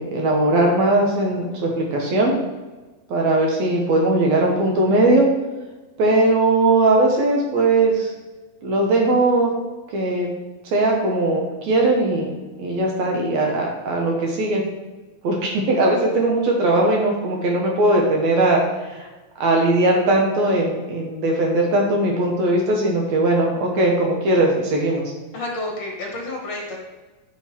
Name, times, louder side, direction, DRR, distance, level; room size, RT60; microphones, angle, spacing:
voice 1, 0.0-2.3 3.1-5.3 6.0-8.1 8.6-9.5 9.9-10.3 10.7-14.6 15.2-19.1 19.4-25.0, right 2 dB, 65° right, -1 dB, 1.8 m, -19 dB
voice 2, 25.3-26.8, left 2 dB, 55° left, -1 dB, 2.3 m, -30 dB
9.5 x 3.8 x 4.4 m, 1.2 s
omnidirectional pair, 4.2 m